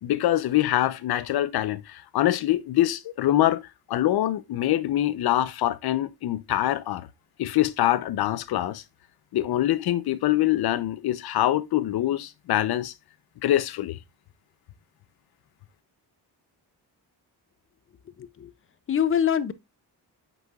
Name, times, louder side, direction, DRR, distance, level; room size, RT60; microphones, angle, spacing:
voice 1, 0.0-3.6 3.9-7.1 7.4-8.8 9.3-12.9 13.4-14.0, left 13 dB, 70° left, 0.7 m, -24 dB
voice 2, 18.2-18.5 18.9-19.5, left 8 dB, 35° left, 0.5 m, -24 dB
8.2 x 5.6 x 2.3 m
wide cardioid pair, 165°, 39 cm